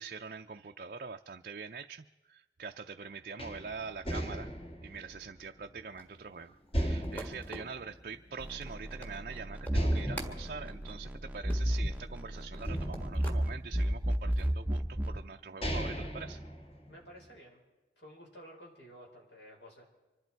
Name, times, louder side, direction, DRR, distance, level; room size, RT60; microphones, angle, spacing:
voice 1, 0.0-4.5 4.8-16.4, right 5 dB, 45° right, 4 dB, 0.5 m, -44 dB
sound 1, 3.4-6.2 6.7-8.7 9.0-9.1 9.7-12.1 12.6-14.2 15.0-15.1 15.4-17.2, equal, 30° left, 1.7 m, -37 dB
sound 2, 5.9-13.5 13.9-14.5, equal, 10° left, 1.5 m, -48 dB
sound 3, 8.4-15.2, equal, 10° right, 0.7 m, -34 dB
voice 2, 16.8-17.6 18.0-19.9, equal, 70° left, -1 dB, 5.2 m, -52 dB
25.5 x 12.0 x 4.6 m, 1.1 s
head